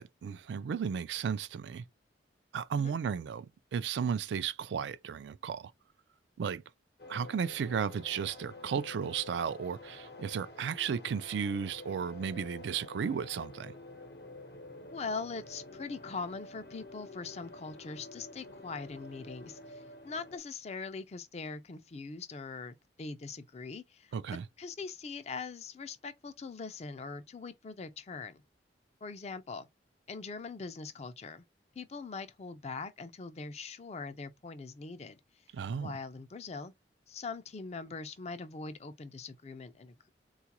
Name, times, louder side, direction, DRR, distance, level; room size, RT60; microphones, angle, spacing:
voice 1, 0.0-1.8 2.5-3.5 3.7-5.7 6.4-6.6 7.1-13.7 24.1-24.4 35.5-35.9, right 7 dB, 75° right, 0.3 m, -34 dB
sound 1, 7.0-20.4, left 2 dB, 60° left, 0.8 m, -49 dB
voice 2, 14.9-24.1 24.6-28.4 29.0-29.7 30.1-31.4 31.8-35.2 35.8-36.7 37.1-40.1, left 4 dB, 35° left, 0.4 m, -42 dB
3.8 x 2.4 x 2.8 m
head